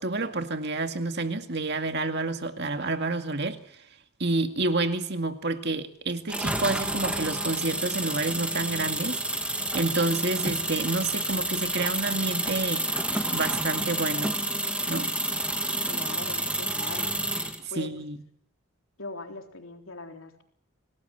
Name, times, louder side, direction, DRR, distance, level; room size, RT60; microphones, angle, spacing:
voice 1, 0.0-3.8 4.2-12.9 13.3-14.4 14.9-15.1 17.6-18.2, right 2 dB, 50° right, 2.1 m, -29 dB
sound 1, 6.3-17.6, right 1 dB, 5° right, 2.0 m, -29 dB
voice 2, 15.9-17.1 17.7-17.9 19.0-20.4, left 2 dB, 75° left, 3.8 m, -40 dB
27.0 x 18.5 x 8.1 m
head